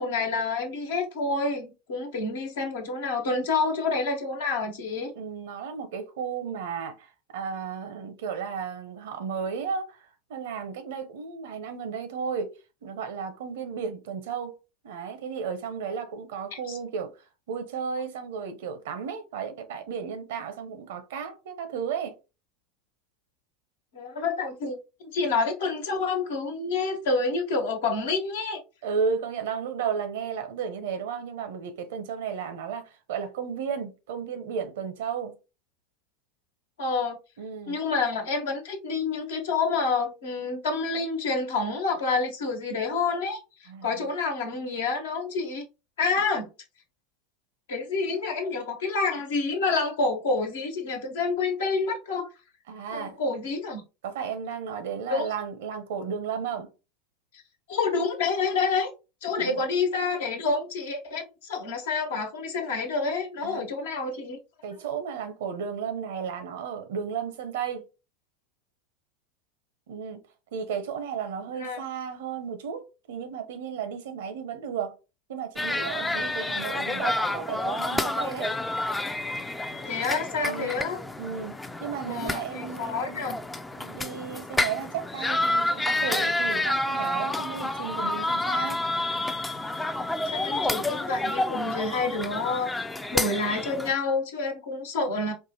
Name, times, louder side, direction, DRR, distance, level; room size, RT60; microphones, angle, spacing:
voice 1, 0.0-5.1 16.5-16.8 23.9-28.6 36.8-37.2 37.7-45.6 46.0-46.5 47.7-52.3 52.9-53.8 55.1-55.2 57.7-58.9 59.2-64.4 71.5-71.9 79.8-81.0 82.1-83.4 90.2-92.7 93.1-95.3, left 4 dB, 70° left, 1.2 m, -28 dB
voice 2, 5.1-7.1 7.3-12.5 12.8-14.6 14.8-17.1 17.5-22.2 28.8-35.3 37.4-37.8 43.7-43.9 52.7-53.2 54.0-56.7 59.4-59.6 60.0-60.1 63.4-63.6 64.6-67.8 69.9-70.2 70.5-74.9 75.3-78.5 80.4-80.7 81.2-83.3 83.8-88.8, right 6 dB, 70° right, 0.8 m, -34 dB
sound 1, 75.6-93.9, left 2 dB, 10° left, 0.4 m, -29 dB
4.6 x 2.4 x 2.8 m
hypercardioid pair, 85°, 0 cm